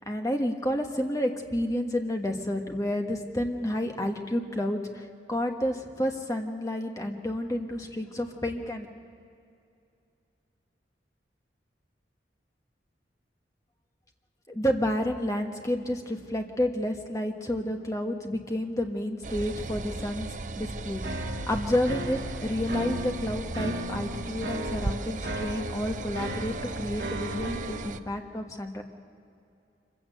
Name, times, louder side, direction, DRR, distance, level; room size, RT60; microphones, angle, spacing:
voice 1, 0.1-8.9 14.5-20.3 20.6-21.0 21.5-28.8, left 1 dB, 20° left, 3 dB, 1.4 m, -30 dB
sound 1, 19.2-28.0, right 3 dB, 45° right, 0.6 m, -36 dB
sound 2, 21.0-27.9, right 1 dB, 70° right, 1.5 m, -36 dB
25.5 x 15.5 x 7.9 m, 2.6 s
head